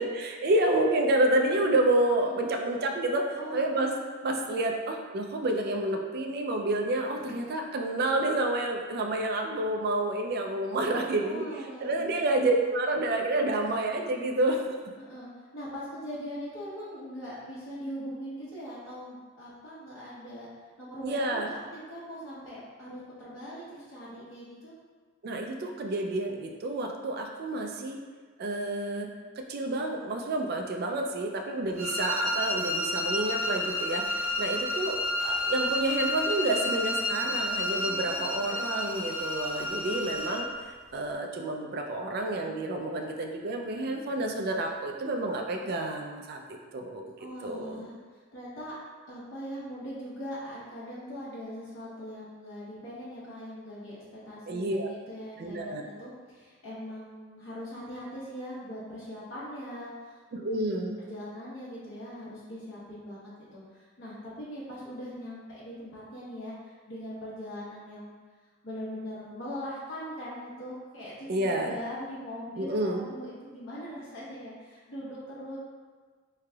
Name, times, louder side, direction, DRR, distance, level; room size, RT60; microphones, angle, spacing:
voice 1, 0.0-3.3 3.5-4.0 4.2-11.5 11.8-14.6 21.0-21.5 25.2-28.0 28.4-29.1 29.4-47.1 47.4-47.9 54.5-54.9 55.4-55.8 60.3-61.0 71.3-71.8 72.6-73.1, right 2 dB, 55° right, 2 dB, 0.4 m, -29 dB
voice 2, 3.3-3.8 7.1-7.5 11.2-12.1 14.1-14.3 15.0-20.5 20.8-24.7 31.5-31.6 37.8-38.5 47.2-48.7 49.1-54.0 54.2-60.2 61.0-68.1 68.6-75.6, equal, 90° left, -9 dB, 1.0 m, -41 dB
sound 1, 31.7-40.5, left 1 dB, 35° right, 1.5 m, -30 dB
3.7 x 3.2 x 2.3 m, 1.5 s
head